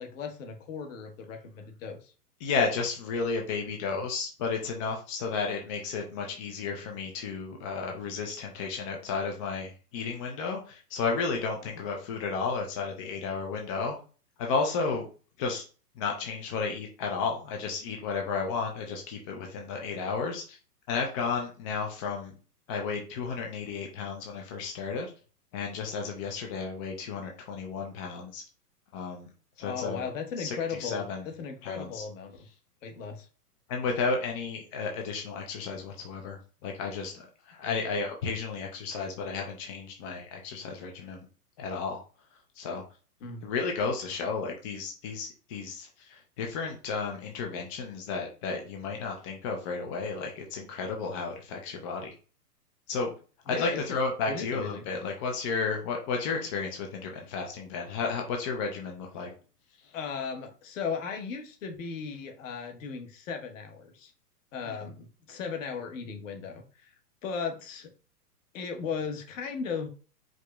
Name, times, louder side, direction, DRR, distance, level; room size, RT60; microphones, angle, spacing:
voice 1, 0.0-2.1 29.6-32.4 32.8-33.3 37.7-37.8 43.2-43.5 53.5-54.0 54.3-54.8 59.9-64.1 64.5-66.9 67.2-67.9 68.5-69.9, left 6 dB, 50° left, 4 dB, 1.2 m, -36 dB
voice 2, 2.4-14.0 14.4-15.1 15.4-15.6 16.0-20.6 20.9-22.3 22.7-25.1 25.5-28.4 28.9-29.3 29.6-30.1 30.4-31.3 31.6-32.0 33.7-41.3 41.6-42.0 42.6-42.8 43.4-52.1 52.9-53.1 53.5-59.3 64.6-64.8, left 4 dB, 20° left, 1 dB, 0.5 m, -33 dB
4.8 x 2.8 x 2.3 m, 0.36 s
hypercardioid pair, 125°, 48 cm